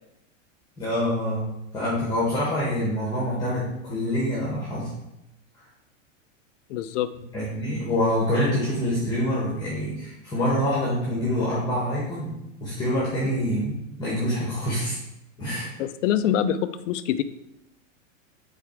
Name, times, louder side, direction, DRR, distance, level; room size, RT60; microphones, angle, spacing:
voice 1, 0.8-1.5 1.7-4.9 7.3-12.3 12.6-15.0 15.4-15.7, left 1 dB, 10° left, -6 dB, 1.5 m, -26 dB
voice 2, 6.7-7.1 15.8-17.2, left 10 dB, 65° left, 13 dB, 0.5 m, -25 dB
5.0 x 4.3 x 4.6 m, 0.89 s
supercardioid pair, 135°, 39 cm